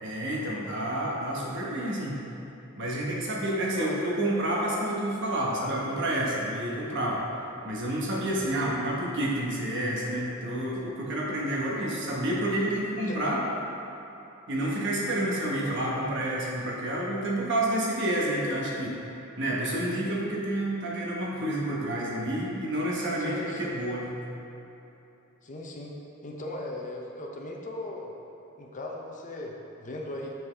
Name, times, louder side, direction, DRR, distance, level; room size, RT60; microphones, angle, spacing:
voice 1, 0.0-2.2 2.8-7.2 7.6-13.4 14.5-19.0 19.4-24.1, right 1 dB, 60° right, -4 dB, 1.2 m, -29 dB
voice 2, 23.2-23.7 25.4-25.9 26.2-28.1 28.6-30.3, left 2 dB, 35° left, 0 dB, 0.7 m, -38 dB
7.0 x 6.0 x 3.3 m, 3.0 s
head